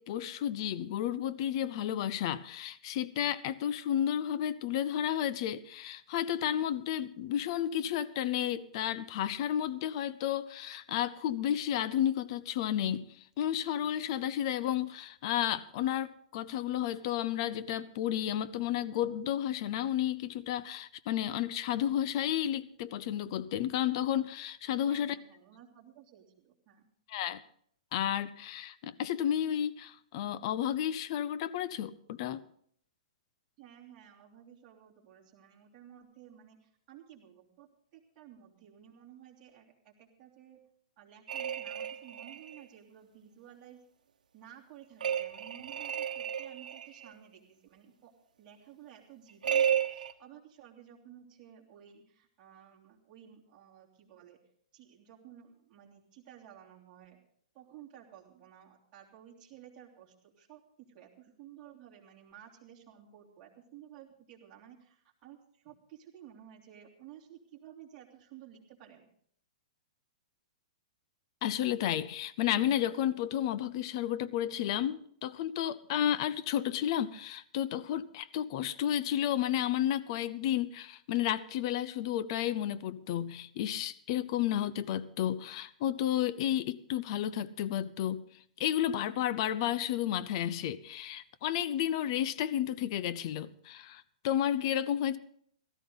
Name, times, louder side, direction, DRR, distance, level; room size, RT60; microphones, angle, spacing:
voice 1, 0.0-13.0 13.4-25.2 27.1-27.4 27.9-32.4 71.4-88.2 88.6-95.2, left 11 dB, 40° left, 0.7 m, -32 dB
voice 2, 24.8-26.9 33.6-40.6 41.0-43.8 44.3-54.4 54.7-57.2 57.5-69.1, right 10 dB, 25° right, 3.2 m, -54 dB
sound 1, 41.3-42.6 45.0-47.1 49.4-50.1, right 9 dB, 85° right, 1.0 m, -32 dB
17.0 x 13.5 x 4.0 m
hypercardioid pair, 155°, 4 cm